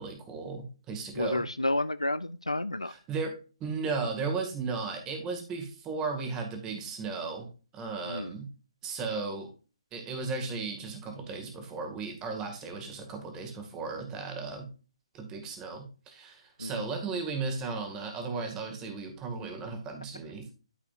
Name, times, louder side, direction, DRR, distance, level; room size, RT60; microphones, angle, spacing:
voice 1, 0.0-1.4 2.8-3.4 3.6-7.5 7.7-8.5 8.8-9.5 9.9-14.7 15.1-20.5, right 4 dB, 15° right, 4 dB, 1.9 m, -35 dB
voice 2, 1.1-2.9 8.0-8.3 16.6-16.9, left 1 dB, 90° left, 14 dB, 0.4 m, -31 dB
13.0 x 4.9 x 2.5 m, 0.34 s
figure-of-eight pair, 135°, 3 cm